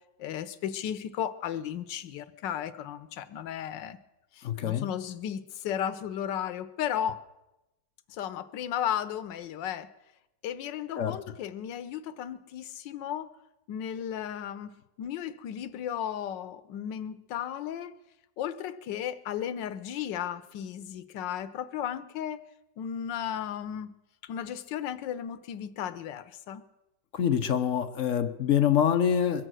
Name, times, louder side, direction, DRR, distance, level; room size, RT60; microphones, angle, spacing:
voice 1, 0.2-4.0 4.4-7.2 8.1-9.9 10.4-13.3 13.7-14.7 15.0-17.9 18.4-22.4 22.8-23.9 24.2-26.6, left 9 dB, 85° left, 14 dB, 1.4 m, -34 dB
voice 2, 4.4-4.9 11.0-11.2 27.1-29.5, left 9 dB, 55° left, 9 dB, 1.0 m, -25 dB
23.0 x 7.8 x 6.2 m, 0.95 s
omnidirectional pair, 1.9 m